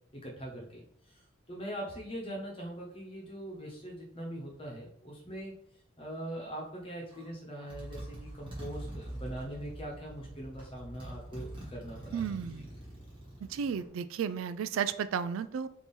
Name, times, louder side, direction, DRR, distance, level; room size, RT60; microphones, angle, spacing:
voice 1, 0.1-1.2 1.5-5.5 6.0-12.7, right 1 dB, 25° left, -2 dB, 1.1 m, -42 dB
Motorcycle, 7.1-7.3 7.7-13.9, right 1 dB, 25° right, 1.3 m, -45 dB
voice 2, 12.1-12.7 13.4-15.7, right 7 dB, 85° right, 14 dB, 0.3 m, -33 dB
3.6 x 2.9 x 4.2 m, 0.67 s
head